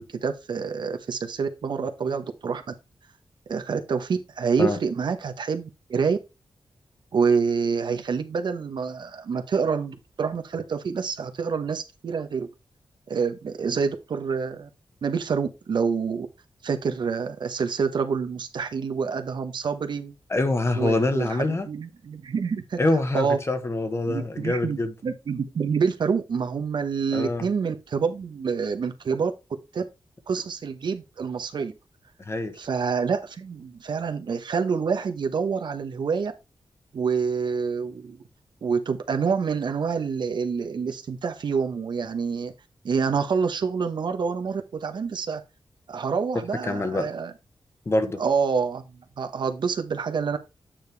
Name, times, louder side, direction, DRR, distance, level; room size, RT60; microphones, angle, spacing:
voice 1, 0.0-2.6 3.5-6.2 7.1-12.5 13.1-14.7 15.0-16.3 16.6-20.1 20.7-22.8 23.1-23.4 24.1-29.3 29.7-29.8 30.3-31.7 32.6-36.3 36.9-38.2 38.6-42.5 42.8-45.4 45.9-47.3 48.2-50.4, right 5 dB, 70° right, 1.1 m, -27 dB
voice 2, 20.3-21.7 22.8-24.9 27.1-27.5 32.2-32.6 46.6-47.1 47.8-48.2, left 2 dB, 35° left, 1.2 m, -25 dB
8.9 x 5.1 x 3.4 m
wide cardioid pair, 115°, 8 cm